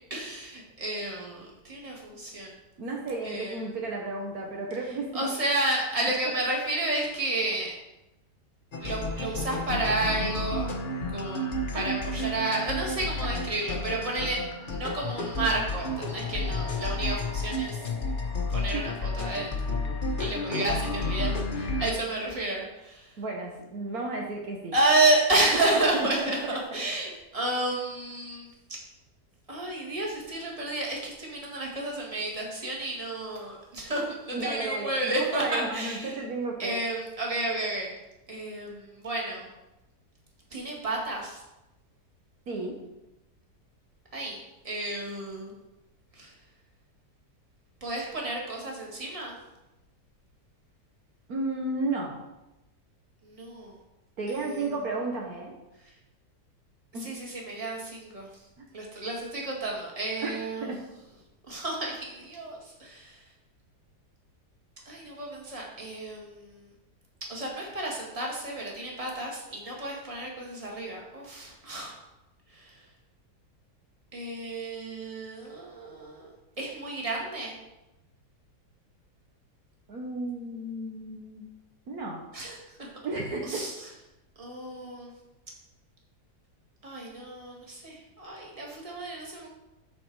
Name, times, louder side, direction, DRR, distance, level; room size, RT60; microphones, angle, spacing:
voice 1, 0.1-2.5 3.2-3.6 5.1-7.7 8.8-10.7 11.1-11.5 11.7-14.4 14.7-17.8 18.5-18.9 19.2-19.5 20.2-23.1 24.7-28.8 29.5-36.2 36.6-37.9 38.3-39.5 40.5-41.4 44.1-44.4 44.6-45.5 46.2-46.3 47.8-49.3 53.2-53.7 54.3-54.4 57.0-58.3 58.7-60.7 61.5-63.1 64.9-66.5 67.3-71.9 72.5-72.7 74.1-76.3 76.6-77.5 82.3-82.5 83.4-83.7 84.4-85.1 86.8-89.5, right 2 dB, 20° right, -2 dB, 1.9 m, -31 dB
voice 2, 2.8-5.3 11.7-12.0 18.7-18.9 20.2-20.3 23.2-24.7 25.7-26.6 34.3-36.8 42.5-42.7 51.3-52.2 54.2-55.5 56.9-57.1 60.2-60.8 79.9-81.5 81.9-82.2 83.0-83.6, right 2 dB, 65° right, 0 dB, 1.5 m, -33 dB
sound 1, 8.7-21.9, left 2 dB, 35° left, 1.0 m, -31 dB
12.5 x 4.4 x 4.7 m, 0.96 s
omnidirectional pair, 1.8 m